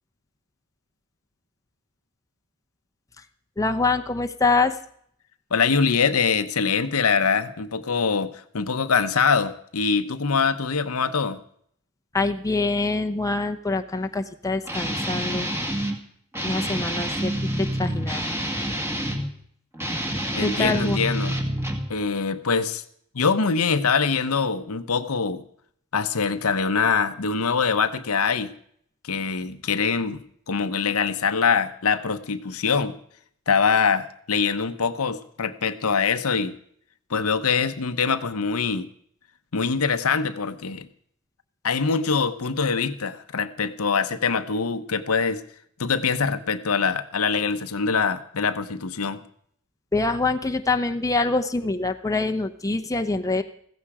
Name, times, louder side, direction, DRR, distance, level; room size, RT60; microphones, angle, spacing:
voice 1, 3.6-4.7 12.1-15.5 16.4-18.3 20.4-21.0 49.9-53.4, left 3 dB, 15° left, 5 dB, 0.8 m, -25 dB
voice 2, 5.5-11.4 20.3-21.4 21.9-22.8 23.1-25.4 25.9-28.5 29.0-32.9 33.5-36.5 37.1-38.9 39.5-40.9 41.6-45.4 45.8-49.2, left 5 dB, 75° left, 10 dB, 0.9 m, -23 dB
Guitar, 14.7-16.0 16.3-19.3 19.7-21.9, equal, 10° right, 2.0 m, -27 dB
15.5 x 14.5 x 4.9 m, 0.66 s
head